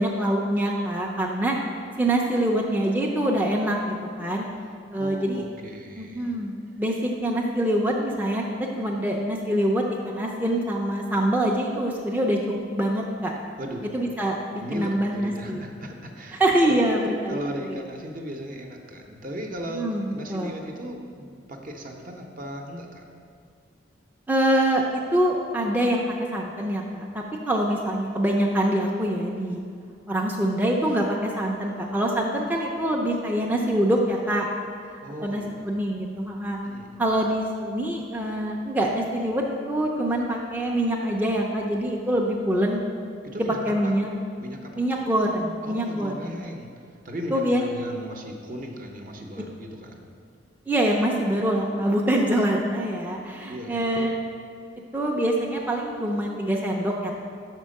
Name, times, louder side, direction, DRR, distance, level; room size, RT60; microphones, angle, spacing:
voice 1, 0.0-1.6 2.0-4.5 4.9-5.4 6.0-8.4 8.8-12.4 12.8-13.3 13.9-15.6 16.4-17.4 19.7-20.6 24.3-29.6 30.1-34.5 34.9-36.6 37.0-42.8 43.7-44.1 44.7-46.4 47.3-47.6 50.7-54.2 54.9-57.1, right 1 dB, 10° right, -2 dB, 0.4 m, -25 dB
voice 2, 5.0-6.3 13.6-13.9 14.6-16.8 17.3-23.0 35.0-35.7 36.6-37.0 43.2-44.0 44.4-44.8 45.6-46.7 47.0-50.1 53.5-54.0, equal, 45° right, 3 dB, 0.7 m, -37 dB
5.7 x 4.5 x 6.3 m, 2.2 s
head